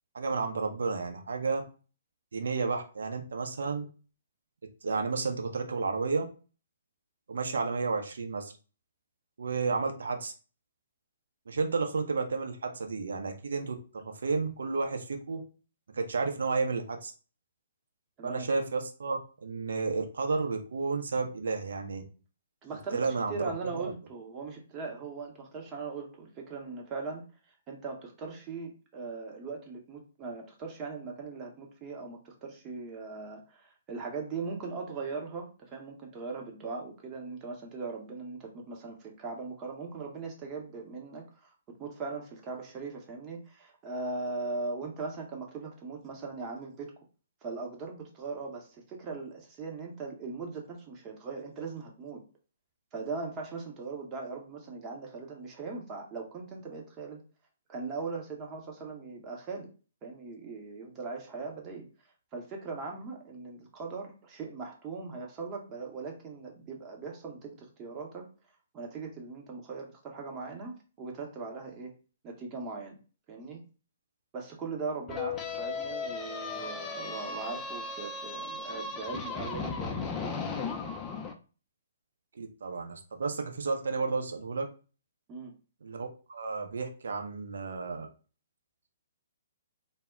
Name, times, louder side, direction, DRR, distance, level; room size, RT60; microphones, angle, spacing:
voice 1, 0.1-1.6 2.3-3.9 4.8-6.3 7.3-8.5 9.4-10.3 11.5-15.4 15.9-17.1 18.2-22.0 22.9-23.9 82.3-84.7 85.8-88.1, right 4 dB, 65° right, 4 dB, 0.5 m, -32 dB
voice 2, 22.6-23.0 23.3-27.2 27.7-46.9 47.4-52.2 52.9-57.2 57.7-59.7 60.0-61.9 62.3-68.3 68.7-71.9 72.2-73.0 73.3-73.6 74.3-80.9 85.3-85.5, right 4 dB, 25° right, 1 dB, 0.7 m, -39 dB
sound 1, 75.1-81.3, left 4 dB, 20° left, 0.4 m, -36 dB
2.1 x 2.0 x 3.6 m, 0.35 s
figure-of-eight pair, 125°, 0 cm